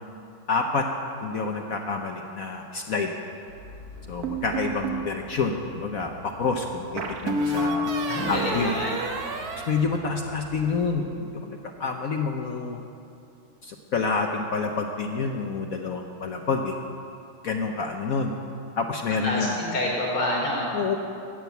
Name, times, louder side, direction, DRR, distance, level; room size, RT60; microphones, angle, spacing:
voice 1, 0.5-0.8 1.2-3.1 4.1-7.9 8.3-8.7 9.7-12.8 13.6-16.7 17.4-18.3 18.8-19.6 20.7-21.0, left 4 dB, 60° left, 3 dB, 0.9 m, -28 dB
sound 1, 3.5-10.9, left 1 dB, 70° right, 2.8 m, -46 dB
sound 2, 4.2-5.1 7.0-10.6, right 1 dB, 55° right, 1.3 m, -29 dB
voice 2, 8.1-9.0 19.2-20.7, left 1 dB, 85° left, -4 dB, 4.4 m, -27 dB
14.0 x 8.8 x 8.2 m, 2.6 s
omnidirectional pair, 2.2 m